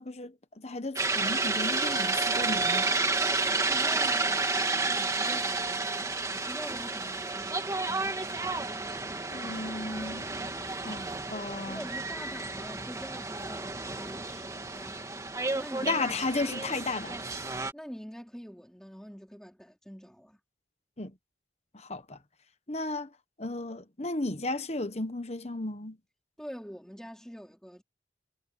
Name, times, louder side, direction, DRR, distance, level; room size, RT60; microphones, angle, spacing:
voice 1, 0.0-2.9 9.3-10.5 10.8-11.8 15.8-17.2 21.0-21.1 21.7-22.2 22.7-23.1 23.4-26.0, left 2 dB, 35° left, 1.3 m, -34 dB
sound 1, 1.0-17.7, right 3 dB, 20° right, 2.4 m, -31 dB
voice 2, 3.5-8.8 11.7-15.0 15.5-16.1 17.7-20.4 26.4-27.8, equal, 5° left, 4.3 m, -45 dB
head